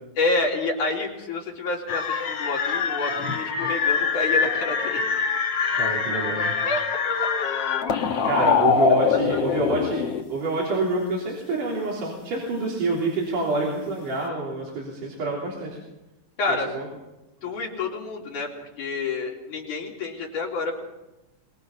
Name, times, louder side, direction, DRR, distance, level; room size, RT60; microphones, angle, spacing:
voice 1, 0.2-5.0 6.6-6.8 7.1-7.2 8.4-9.7 16.4-16.7 17.4-20.9, left 3 dB, 75° left, -2 dB, 5.0 m, -29 dB
sound 1, 1.9-10.2, left 5 dB, 55° left, 2.2 m, -24 dB
voice 2, 5.7-6.6 8.2-15.8 16.5-16.9 17.4-17.5, right 3 dB, 85° right, -4 dB, 5.1 m, -27 dB
25.0 x 21.5 x 5.6 m, 0.99 s
omnidirectional pair, 3.6 m